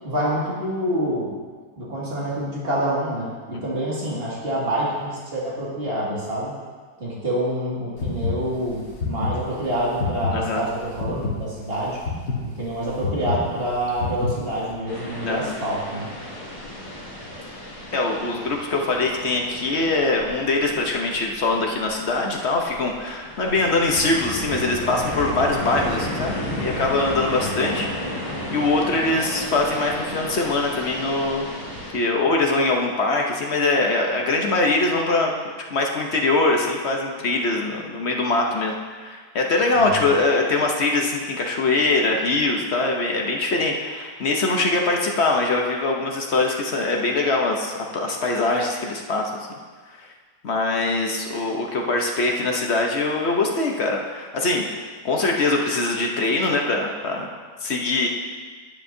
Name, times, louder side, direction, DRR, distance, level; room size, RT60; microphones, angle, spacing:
voice 1, 0.0-1.3 1.8-6.5 7.0-12.0 12.6-16.1 27.3-27.6 39.8-40.1, right 1 dB, 35° right, -6 dB, 2.3 m, -27 dB
sound 1, 8.0-14.7, left 4 dB, 65° left, 1.8 m, -28 dB
voice 2, 10.3-10.6 15.2-15.5 17.9-27.9 28.2-31.5 31.9-35.3 35.7-49.3 50.0-50.1 50.4-54.6 55.0-57.3 57.6-58.1, left 2 dB, 50° left, 1 dB, 0.9 m, -22 dB
sound 2, 14.9-31.9, equal, 20° left, 2.4 m, -33 dB
10.0 x 9.6 x 2.7 m, 1.5 s
omnidirectional pair, 1.9 m